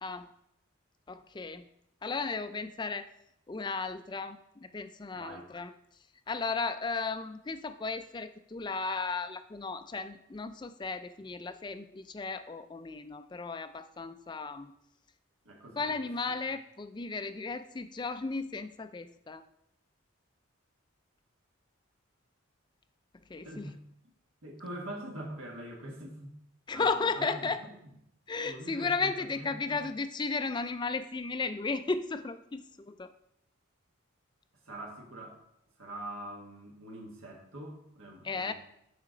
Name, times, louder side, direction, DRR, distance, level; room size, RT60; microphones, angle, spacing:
voice 1, 0.0-0.3 1.1-1.7 2.0-3.1 3.5-5.7 6.3-14.7 15.8-19.4 23.3-23.7 26.7-27.6 28.3-33.1 38.2-38.5, left 4 dB, 20° left, 10 dB, 0.3 m, -35 dB
voice 2, 5.1-5.5 15.4-15.9 16.3-16.4 23.4-23.8 24.4-26.3 26.7-27.8 28.4-29.8 34.6-35.4 35.8-38.5, right 1 dB, 80° right, -1 dB, 1.5 m, -44 dB
8.9 x 4.9 x 3.9 m, 0.80 s
head